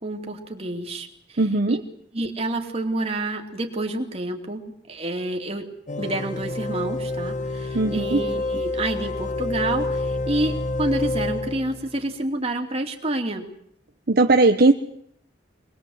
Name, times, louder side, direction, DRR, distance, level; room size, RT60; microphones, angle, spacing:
voice 1, 0.0-1.1 1.7-1.8 2.1-5.7 6.0-13.5, right 1 dB, 35° right, 3 dB, 2.8 m, -28 dB
voice 2, 1.4-1.8 7.7-8.2 14.1-14.7, right 3 dB, 55° right, 6 dB, 0.9 m, -18 dB
sound 1, 5.9-12.0, left 2 dB, 40° left, 1.0 m, -28 dB
24.5 x 20.5 x 8.0 m, 0.69 s
head